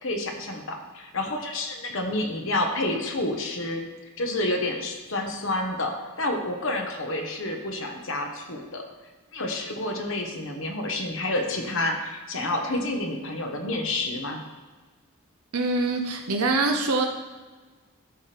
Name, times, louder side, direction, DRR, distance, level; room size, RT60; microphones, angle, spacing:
voice 1, 0.0-3.8 4.2-8.8 9.3-14.4, left 2 dB, 60° left, 3 dB, 1.2 m, -29 dB
voice 2, 15.5-17.1, right 3 dB, 85° right, 2 dB, 0.8 m, -24 dB
13.0 x 5.9 x 3.4 m, 1.3 s
head